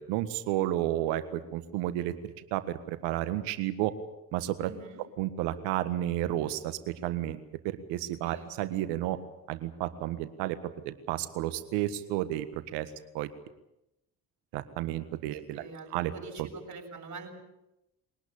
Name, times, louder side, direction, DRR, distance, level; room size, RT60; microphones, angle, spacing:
voice 1, 0.0-3.9 4.3-4.7 5.2-9.2 9.5-13.3 14.5-15.6 15.9-16.1 16.4-16.5, right 14 dB, 85° right, 12 dB, 1.7 m, -32 dB
voice 2, 4.6-5.0 8.2-8.5 15.2-17.3, right 3 dB, 45° right, 2 dB, 7.0 m, -45 dB
23.0 x 18.5 x 8.7 m, 0.91 s
hypercardioid pair, 55°, 40 cm